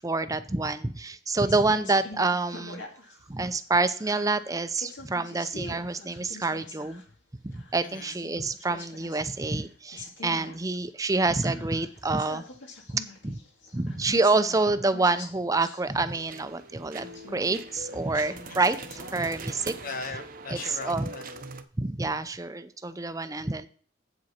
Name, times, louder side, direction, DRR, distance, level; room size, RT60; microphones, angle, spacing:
voice 1, 0.0-2.8 3.3-7.0 7.4-12.4 12.9-13.4 13.7-19.7 20.5-21.1 21.8-23.7, right 3 dB, 20° right, 11 dB, 0.6 m, -27 dB
sound 1, 1.4-3.2 3.6-7.1 7.5-9.6 9.9-10.6 10.9-11.0 11.4-16.5 16.9-19.3, left 2 dB, 85° left, 2.2 m, -45 dB
voice 2, 7.8-8.2 18.5-18.8 19.8-21.4, left 4 dB, 50° left, 7 dB, 1.2 m, -39 dB
sound 2, 16.1-21.6, right 3 dB, 50° right, 0.8 m, -42 dB
8.3 x 7.8 x 4.3 m, 0.43 s
head